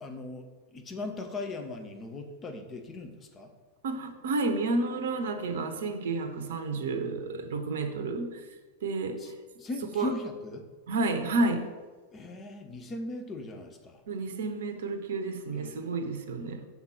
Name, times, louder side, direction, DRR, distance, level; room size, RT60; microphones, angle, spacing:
voice 1, 0.0-3.5 9.2-9.3 9.6-10.6 12.1-14.0 15.5-15.9, left 2 dB, 25° left, 5 dB, 0.9 m, -39 dB
voice 2, 3.8-8.4 8.8-9.2 9.9-10.1 10.9-11.7 14.1-16.6, right 3 dB, 60° right, 7 dB, 0.7 m, -30 dB
5.7 x 4.0 x 5.9 m, 1.4 s
figure-of-eight pair, 90°, 0 cm